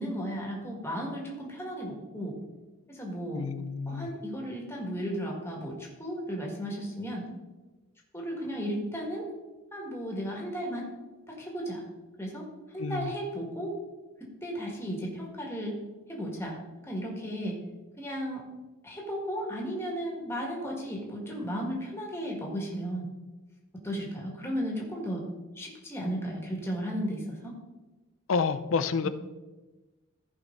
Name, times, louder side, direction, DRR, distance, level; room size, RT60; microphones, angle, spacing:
voice 1, 0.0-2.4 2.9-3.4 3.9-7.2 8.1-9.3 9.7-10.9 11.3-11.8 12.2-12.5 12.7-13.7 14.4-15.8 16.1-16.6 16.9-17.6 18.0-18.4 18.8-23.0 23.8-25.2 25.6-27.6 29.0-29.1, equal, 10° left, -1 dB, 2.0 m, -34 dB
voice 2, 3.3-4.1 12.8-13.1 28.3-29.1, left 5 dB, 70° left, 12 dB, 0.5 m, -29 dB
14.5 x 5.3 x 3.9 m, 1.2 s
head